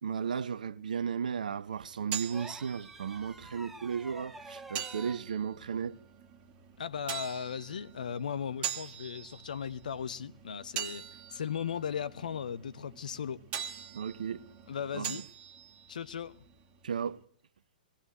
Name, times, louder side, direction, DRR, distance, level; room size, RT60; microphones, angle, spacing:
voice 1, 0.0-6.0 13.9-14.4 14.9-15.2 16.8-17.2, right 7 dB, 60° right, 0.8 m, -35 dB
sound 1, 1.7-17.2, right 9 dB, 25° right, 1.9 m, -44 dB
sound 2, 2.3-5.3 6.9-7.1, right 2 dB, 5° right, 1.0 m, -48 dB
voice 2, 6.8-13.4 14.7-15.3 15.9-16.4, left 7 dB, 60° left, 1.0 m, -37 dB
20.5 x 15.5 x 9.3 m
figure-of-eight pair, 110°, 5 cm